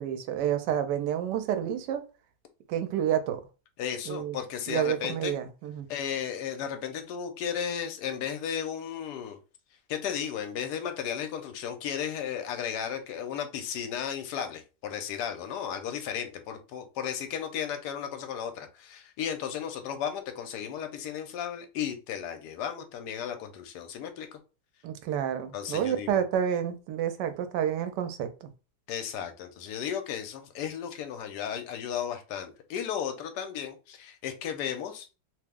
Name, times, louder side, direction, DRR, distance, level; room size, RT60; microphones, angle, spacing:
voice 1, 0.0-2.0 2.7-3.4 4.1-4.4 4.7-5.9 24.8-28.5, right 9 dB, 90° right, 1.2 m, -29 dB
voice 2, 3.8-5.3 5.9-9.4 9.9-24.4 25.5-26.2 28.9-35.1, left 8 dB, 80° left, 1.1 m, -34 dB
2.9 x 2.0 x 3.5 m
omnidirectional pair, 1.8 m